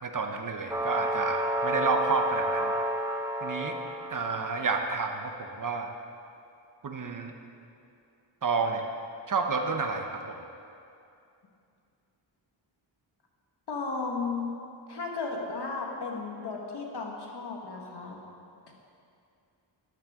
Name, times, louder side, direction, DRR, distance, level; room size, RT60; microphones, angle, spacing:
voice 1, 0.0-2.7 3.4-3.8 4.1-5.9 6.8-7.3 8.4-8.8 9.3-10.4, right 4 dB, 45° right, 4 dB, 0.8 m, -30 dB
sound 1, 0.7-4.8, equal, 5° right, 0.8 m, -30 dB
voice 2, 13.7-14.6 14.9-18.2 18.7-18.8, left 4 dB, 60° left, 0 dB, 1.6 m, -34 dB
13.0 x 10.5 x 3.7 m, 2.6 s
wide cardioid pair, 135°, 46 cm